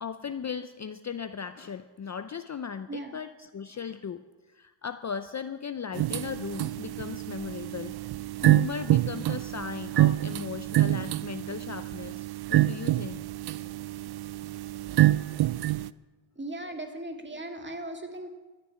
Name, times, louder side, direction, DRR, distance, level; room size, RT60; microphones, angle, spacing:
voice 1, 0.0-4.2 4.5-13.2 16.6-16.8, left 7 dB, 35° left, 11 dB, 0.5 m, -37 dB
sound 1, 5.9-15.9, right 14 dB, 55° right, 0.5 m, -27 dB
voice 2, 16.4-18.3, right 1 dB, 25° right, 4 dB, 2.1 m, -37 dB
13.0 x 6.8 x 9.8 m, 1.2 s
cardioid pair, 75°, 47 cm